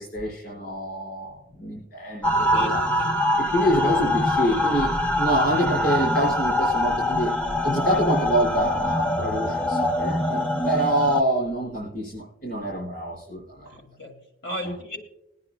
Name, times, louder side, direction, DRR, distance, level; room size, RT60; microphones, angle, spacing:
voice 1, 0.0-2.8 3.4-7.3 7.6-13.7 14.6-14.7, equal, 50° left, -6 dB, 5.0 m, -26 dB
sound 1, 2.2-11.2, left 1 dB, 10° left, 0.6 m, -24 dB
voice 2, 2.5-3.1 13.6-15.0, equal, 70° left, 2 dB, 2.4 m, -35 dB
21.5 x 9.5 x 2.2 m, 0.85 s
head